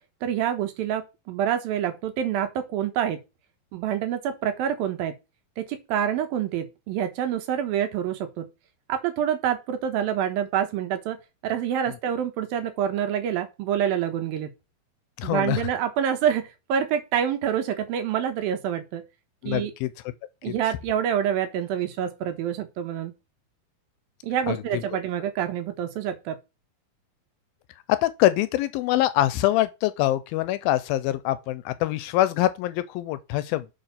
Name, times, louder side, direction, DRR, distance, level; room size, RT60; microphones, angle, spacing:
voice 1, 0.2-3.2 3.7-5.2 5.6-8.5 8.9-11.2 11.4-14.5 15.2-19.0 19.5-19.7 20.4-23.1 24.2-26.4, right 9 dB, 75° right, 2.8 m, -27 dB
voice 2, 15.2-15.6 19.4-19.9 20.5-20.6 24.5-24.8 27.9-33.7, left 15 dB, 80° left, 2.2 m, -24 dB
7.8 x 4.4 x 5.7 m
omnidirectional pair, 4.4 m